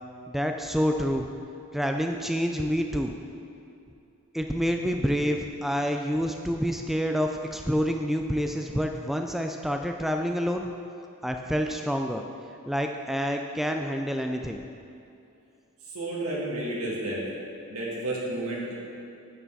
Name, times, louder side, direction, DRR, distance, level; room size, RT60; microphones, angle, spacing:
voice 1, 0.3-1.3 1.7-3.1 4.3-10.7 11.2-12.2 12.7-14.6, equal, ahead, 3 dB, 0.3 m, -28 dB
voice 2, 15.9-17.2 17.7-18.7, right 1 dB, 80° right, -5 dB, 2.4 m, -31 dB
9.0 x 8.6 x 4.0 m, 2.7 s
head